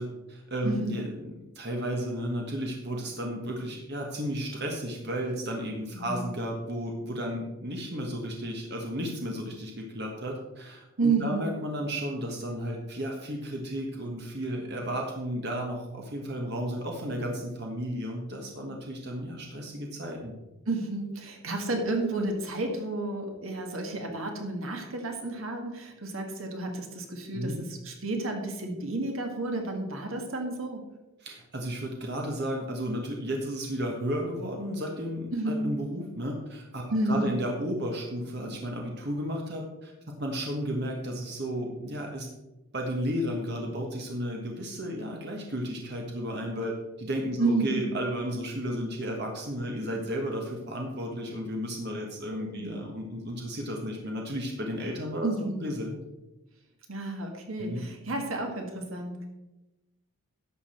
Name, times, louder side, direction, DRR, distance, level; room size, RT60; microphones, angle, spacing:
voice 1, 0.0-20.4 27.3-27.6 31.2-42.3 42.7-56.0 57.6-57.8, equal, 50° right, 0 dB, 1.4 m, -33 dB
voice 2, 0.6-1.0 5.9-6.2 11.0-11.5 20.6-30.8 35.3-35.7 36.9-37.4 47.4-47.9 52.3-52.8 55.2-55.7 56.9-59.3, right 2 dB, 70° right, 3 dB, 1.7 m, -31 dB
11.5 x 7.1 x 4.4 m, 1.0 s
head